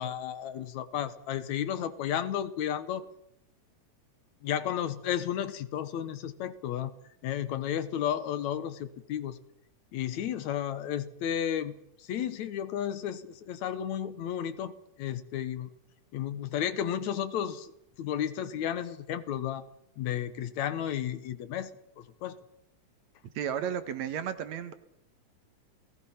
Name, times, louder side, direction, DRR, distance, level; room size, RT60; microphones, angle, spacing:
voice 1, 0.0-3.0 4.4-6.9 7.2-9.4 9.9-11.7 12.1-14.7 15.0-15.7 16.1-17.7 18.0-19.7 20.0-21.7 22.0-22.4, left 10 dB, 70° left, 13 dB, 2.3 m, -33 dB
voice 2, 23.4-24.7, right 9 dB, 65° right, 11 dB, 2.4 m, -33 dB
29.0 x 19.0 x 5.8 m, 0.78 s
omnidirectional pair, 3.5 m